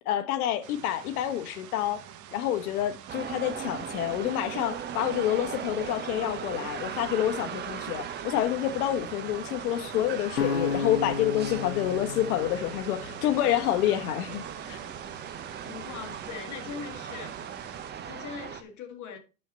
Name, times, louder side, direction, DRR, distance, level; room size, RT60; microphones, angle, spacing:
voice 1, 0.0-2.0 2.3-14.8, left 12 dB, 65° left, 1.0 m, -28 dB
sound 1, 0.6-17.9, right 10 dB, 40° right, 1.2 m, -48 dB
sound 2, 3.1-18.6, right 8 dB, 20° right, 0.8 m, -38 dB
sound 3, 10.4-13.5, left 5 dB, 90° left, 1.0 m, -33 dB
voice 2, 15.6-17.4 18.0-19.2, left 7 dB, 35° left, 2.0 m, -41 dB
11.5 x 4.4 x 4.3 m
hypercardioid pair, 110°, 48 cm